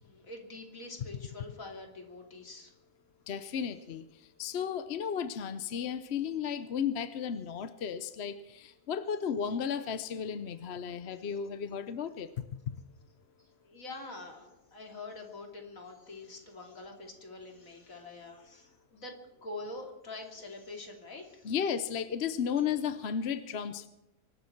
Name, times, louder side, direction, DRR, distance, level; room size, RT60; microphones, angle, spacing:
voice 1, 0.0-2.7 13.6-19.1 19.4-21.5, left 2 dB, 80° left, 2 dB, 3.2 m, -45 dB
voice 2, 3.3-12.8 21.4-23.9, left 7 dB, 55° left, 11 dB, 0.9 m, -34 dB
24.5 x 12.5 x 4.5 m, 0.96 s
omnidirectional pair, 1.4 m